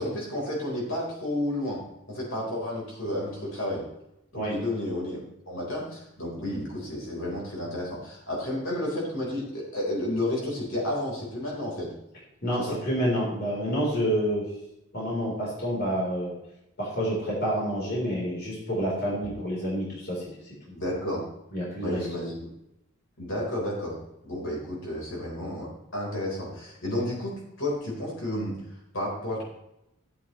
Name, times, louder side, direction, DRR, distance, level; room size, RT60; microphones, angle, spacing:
voice 1, 0.0-1.8 2.1-3.9 4.3-5.2 5.5-11.9 12.6-12.8 20.7-21.2 21.8-22.5 23.2-24.0 24.2-27.3 27.6-28.6 28.9-29.4, left 1 dB, 65° left, -4 dB, 4.3 m, -31 dB
voice 2, 12.4-14.5 14.9-16.3 16.8-20.2 21.5-22.0, equal, 45° left, -5 dB, 3.9 m, -28 dB
14.0 x 8.7 x 3.2 m, 0.85 s
head